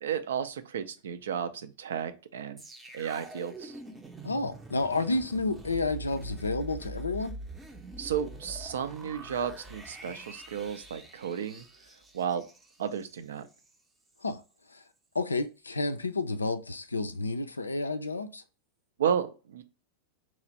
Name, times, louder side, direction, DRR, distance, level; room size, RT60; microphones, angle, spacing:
voice 1, 0.0-2.6 2.9-3.8 8.0-11.7 12.1-12.4 12.8-13.5 19.0-19.6, right 8 dB, 65° right, 0.4 m, -33 dB
sound 1, 2.6-13.8 14.1-14.2, right 2 dB, 15° right, 0.6 m, -45 dB
voice 2, 4.2-7.3 14.2-14.4 14.7-14.8 15.1-18.4, left 3 dB, 80° left, 0.3 m, -30 dB
3.0 x 2.4 x 4.0 m
figure-of-eight pair, 90°, 0 cm